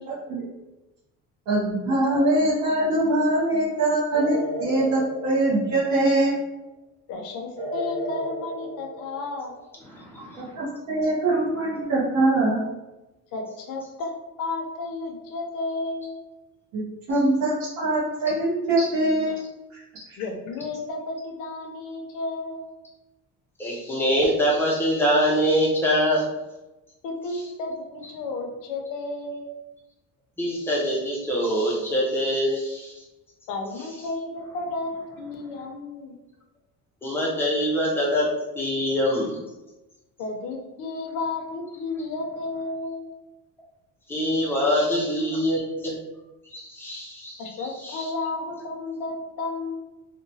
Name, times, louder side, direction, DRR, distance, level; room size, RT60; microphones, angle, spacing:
voice 1, 0.1-0.4 1.5-6.3 10.4-12.7 16.7-19.4 19.7-19.8 20.1-20.2, right 1 dB, 50° right, -9 dB, 0.7 m, -23 dB
sound 1, 2.2-2.8 4.1-6.2 7.6-9.6, equal, 75° right, 1.1 m, -34 dB
voice 2, 7.1-9.5 13.3-16.2 20.2-22.6 27.0-29.5 33.5-36.2 40.2-43.1 45.2-45.5 47.4-49.8, left 3 dB, 65° left, 1 dB, 0.6 m, -32 dB
voice 3, 9.9-10.5 23.6-26.2 30.4-33.0 37.0-38.3 38.5-39.4 44.1-46.0 46.5-47.4 47.8-48.1, equal, 5° left, -4 dB, 0.4 m, -24 dB
2.9 x 2.1 x 2.6 m, 1.0 s
cardioid pair, 165°, 35 cm